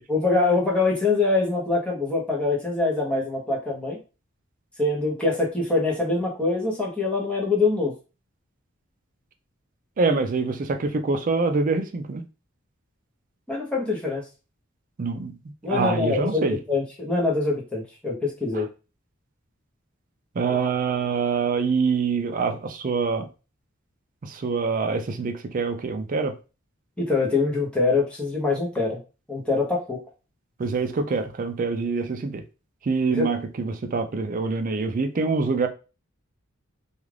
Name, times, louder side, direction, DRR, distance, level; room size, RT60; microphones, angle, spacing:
voice 1, 0.1-4.0 4.8-7.9 10.1-10.2 13.5-14.3 15.6-18.7 27.0-29.0 29.3-30.0 33.1-33.3, left 3 dB, 5° left, 0.8 m, -24 dB
voice 2, 10.0-12.2 15.0-15.3 15.6-16.6 18.5-18.6 20.4-23.3 24.2-26.4 30.6-32.4 32.8-35.7, right 4 dB, 40° right, 0.4 m, -25 dB
2.4 x 2.4 x 3.2 m
head